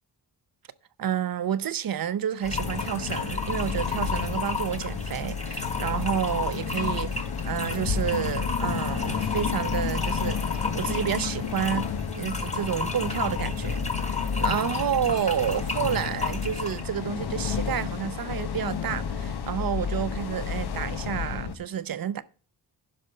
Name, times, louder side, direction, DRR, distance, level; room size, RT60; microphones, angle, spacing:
voice 1, 1.0-10.4 10.7-13.8 14.1-22.2, right 9 dB, 60° right, 0.7 m, -30 dB
sound 1, 2.4-16.8, left 3 dB, 15° left, 1.5 m, -34 dB
sound 2, 2.5-21.6, left 6 dB, 75° left, 1.1 m, -31 dB
11.0 x 5.2 x 5.5 m
wide cardioid pair, 120°, 39 cm